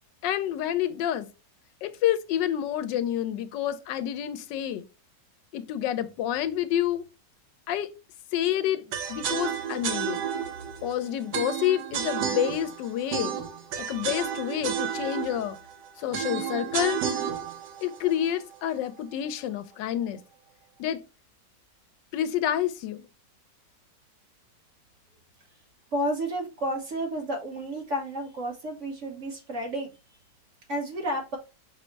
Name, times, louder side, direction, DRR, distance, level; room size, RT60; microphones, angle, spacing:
voice 1, 0.2-1.3 1.8-4.8 5.5-7.0 7.7-7.9 8.3-8.8 9.1-10.2 10.8-13.4 13.8-15.6 16.0-17.0 17.8-20.2 20.8-21.0 22.1-23.1, left 11 dB, 90° left, 1.3 m, -28 dB
sound 1, 8.9-19.0, right 8 dB, 75° right, 1.3 m, -32 dB
voice 2, 25.9-30.0 30.7-31.4, right 1 dB, 50° right, 1.2 m, -31 dB
5.7 x 2.1 x 4.4 m
omnidirectional pair, 1.9 m